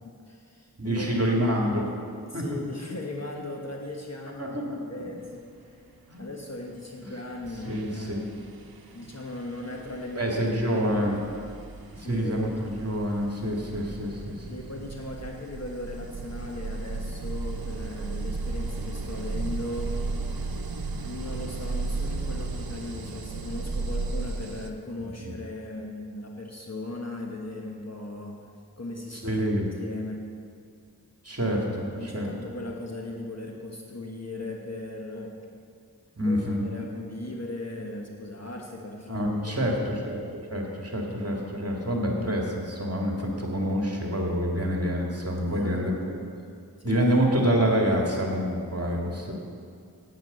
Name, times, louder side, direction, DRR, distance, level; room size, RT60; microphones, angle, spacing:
voice 1, 0.0-1.4 2.2-5.8 6.2-8.5 8.9-10.9 12.0-12.4 14.5-20.0 20.3-20.7 21.0-28.5 28.8-29.4 29.8-30.3 32.0-35.5 36.2-39.5 45.4-46.2 46.8-47.0, left 2 dB, 45° left, 0 dB, 1.3 m, -38 dB
voice 2, 0.8-1.9 2.3-2.4 4.4-4.6 5.0-5.1 6.1-6.2 7.0-7.1 7.6-8.2 10.2-11.1 11.9-14.6 29.2-29.7 31.2-32.3 36.2-36.6 39.1-46.1 46.8-49.3, equal, 40° right, -1 dB, 2.1 m, -27 dB
sound 1, 6.9-7.1 7.4-24.7, right 3 dB, 70° right, 0.8 m, -35 dB
9.4 x 9.1 x 7.9 m, 2.4 s
wide cardioid pair, 40°, 37 cm